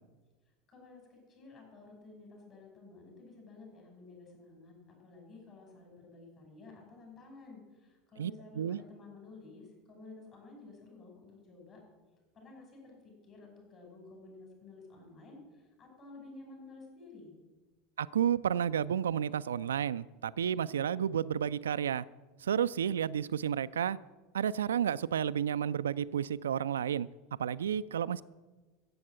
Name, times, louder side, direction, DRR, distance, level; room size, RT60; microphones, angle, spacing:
voice 1, 0.7-11.8 12.3-17.4, left 3 dB, 40° left, 0 dB, 5.9 m, -53 dB
voice 2, 8.2-8.8 18.0-22.1 22.4-24.0 24.3-27.1 27.4-28.2, right 9 dB, 75° right, 17 dB, 0.3 m, -31 dB
15.0 x 7.8 x 7.6 m, 1.2 s
figure-of-eight pair, 75°, 0 cm